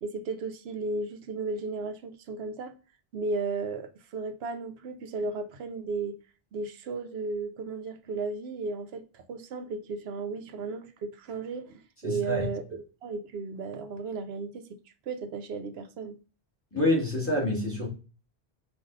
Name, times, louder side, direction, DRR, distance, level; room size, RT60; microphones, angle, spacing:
voice 1, 0.0-2.7 3.1-6.2 6.5-14.7 15.1-16.2, right 3 dB, 70° right, 0.9 m, -35 dB
voice 2, 12.0-12.5 16.7-17.9, left 1 dB, 10° left, 1.8 m, -27 dB
5.2 x 2.6 x 3.9 m
omnidirectional pair, 1.1 m